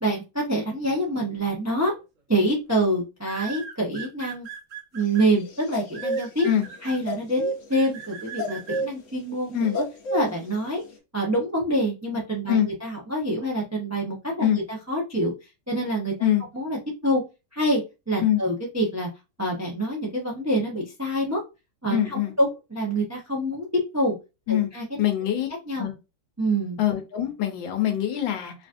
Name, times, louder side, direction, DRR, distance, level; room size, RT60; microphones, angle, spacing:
voice 1, 0.0-1.9 2.3-4.5 4.9-6.5 6.8-9.8 10.1-10.8 11.1-15.3 15.7-16.1 16.5-17.2 17.5-17.8 18.1-19.1 19.4-21.4 21.8-24.1 24.5-25.0 25.7-25.9 26.4-26.8, right 1 dB, 25° right, 0.3 m, -26 dB
sound 1, 1.7-2.0 3.2-5.2 5.9-7.0 7.7-8.8, right 7 dB, 55° right, 0.9 m, -39 dB
sound 2, 5.1-6.7 7.0-10.9, right 1 dB, 55° left, 1.0 m, -30 dB
voice 2, 21.9-22.3 24.5-24.7 25.0-25.5 25.8-25.9 26.8-28.5, left 11 dB, 85° left, 1.6 m, -23 dB
4.9 x 2.5 x 2.5 m
omnidirectional pair, 2.0 m